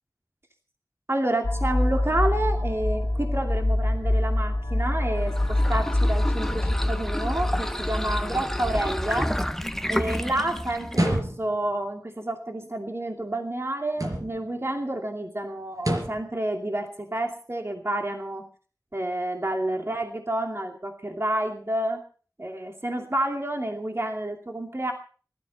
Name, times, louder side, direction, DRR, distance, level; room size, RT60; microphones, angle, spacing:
voice 1, 1.1-9.3 9.9-18.4 18.9-22.0 22.4-24.9, right 1 dB, 40° right, 3 dB, 2.5 m, -29 dB
sound 1, 1.4-10.1, left 1 dB, 65° left, 2.9 m, -26 dB
sound 2, 5.1-11.2, equal, 5° left, 1.0 m, -30 dB
sound 3, 10.9-11.7 13.9-14.5 15.8-16.3, right 1 dB, 60° right, 4.3 m, -27 dB
20.0 x 12.5 x 5.4 m, 0.41 s
wide cardioid pair, 45°, 7 cm